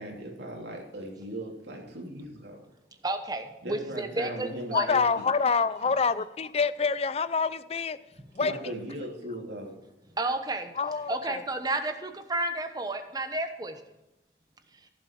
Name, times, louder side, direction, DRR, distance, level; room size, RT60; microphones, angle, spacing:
voice 1, 0.0-2.6 3.6-5.2 5.8-5.9 8.4-9.8, right 1 dB, 75° right, -1 dB, 2.9 m, -38 dB
voice 2, 3.0-4.9 8.2-8.3 10.2-10.7 11.1-13.8, right 2 dB, 20° right, 7 dB, 1.1 m, -31 dB
voice 3, 4.7-8.0 8.3-8.5 10.8-11.4, left 5 dB, 35° left, 16 dB, 0.5 m, -26 dB
15.0 x 7.3 x 4.6 m, 0.97 s
head